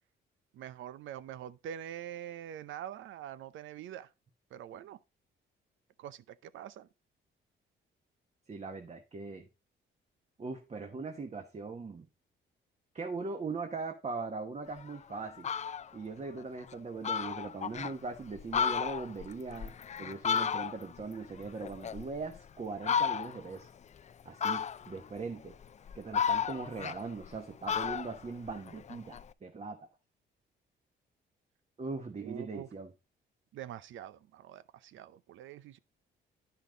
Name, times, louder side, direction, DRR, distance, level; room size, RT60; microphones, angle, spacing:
voice 1, 0.5-4.1 4.5-5.0 6.0-6.9 32.2-32.7 33.5-35.8, right 10 dB, 75° right, 0.7 m, -44 dB
voice 2, 8.5-9.5 10.4-12.1 12.9-15.5 15.9-19.7 20.0-23.7 24.2-25.5 25.9-29.9 31.8-32.9, right 4 dB, 35° right, 1.3 m, -40 dB
Fowl, 14.8-14.9 15.3-15.9 16.4-16.5 16.7-16.8 17.0-17.9 18.4-21.0 21.3-22.4 22.8-23.5 24.4-25.0 25.6-27.4 27.7-29.2, left 7 dB, 35° left, 0.5 m, -33 dB
10.5 x 5.8 x 3.9 m
cardioid pair, 90°, 20 cm